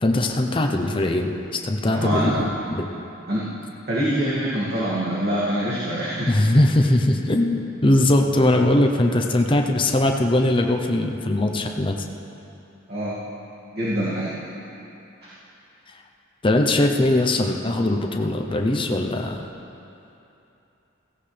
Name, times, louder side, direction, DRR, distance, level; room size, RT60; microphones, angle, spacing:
voice 1, 0.0-2.9 6.3-12.0 16.4-19.5, left 1 dB, 25° left, 3 dB, 0.7 m, -20 dB
voice 2, 1.8-2.4 3.3-3.6 3.9-6.3 12.9-13.2 13.7-14.3, equal, 50° right, -9 dB, 2.3 m, -25 dB
16.5 x 15.5 x 3.4 m, 2.8 s
head